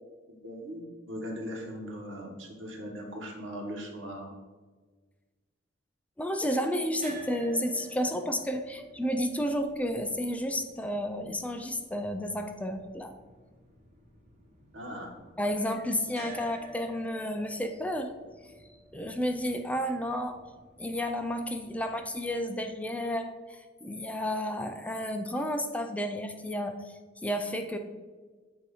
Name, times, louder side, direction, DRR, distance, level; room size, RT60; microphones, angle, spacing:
voice 1, 0.3-4.3 14.7-15.1, equal, 80° right, 1 dB, 1.3 m, -39 dB
voice 2, 6.2-13.1 15.4-18.1 18.9-20.4 20.8-27.8, equal, 5° left, 6 dB, 0.3 m, -31 dB
sound 1, 7.0-23.1, right 1 dB, 40° right, 1.1 m, -51 dB
7.7 x 2.8 x 4.8 m, 1.4 s
head